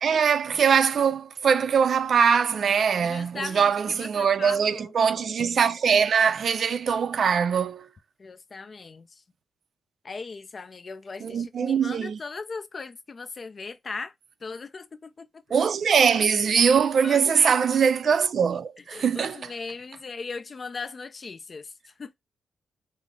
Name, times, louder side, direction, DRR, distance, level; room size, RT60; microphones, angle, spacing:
voice 1, 0.0-7.9 11.2-12.2 15.5-19.4, right 6 dB, 65° right, 0.4 m, -22 dB
voice 2, 3.0-4.9 8.2-9.2 10.0-14.1 14.4-15.4 17.0-17.6 18.8-22.1, left 4 dB, 45° left, 0.4 m, -38 dB
3.8 x 2.0 x 3.4 m
cardioid pair, 80°, 0 cm